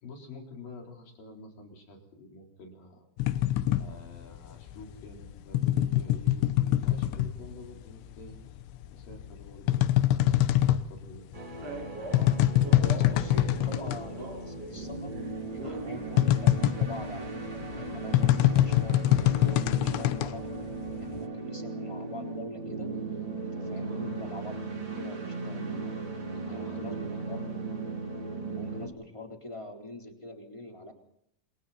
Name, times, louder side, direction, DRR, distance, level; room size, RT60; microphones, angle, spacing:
voice 1, 0.0-3.1 3.8-8.3 8.9-9.9 10.2-11.2 15.6-15.8 23.8-24.0 26.3-27.1, left 2 dB, 50° left, 1 dB, 5.6 m, -48 dB
sound 1, 3.2-7.9 8.2-14.1 14.4-14.5 14.8-21.3, left 13 dB, 90° left, 3.4 m, -25 dB
sound 2, 11.3-28.9, right 3 dB, 30° right, 2.9 m, -37 dB
Male speech man speaking, 11.6-14.9 15.1-18.5, right 2 dB, 90° right, 9.4 m, -43 dB
voice 2, 12.8-15.1 15.6-20.5 20.8-22.9 23.4-25.9 26.5-27.4 28.5-30.9, left 1 dB, 5° left, 1 dB, 3.2 m, -44 dB
29.0 x 27.5 x 4.3 m, 0.72 s
omnidirectional pair, 5.2 m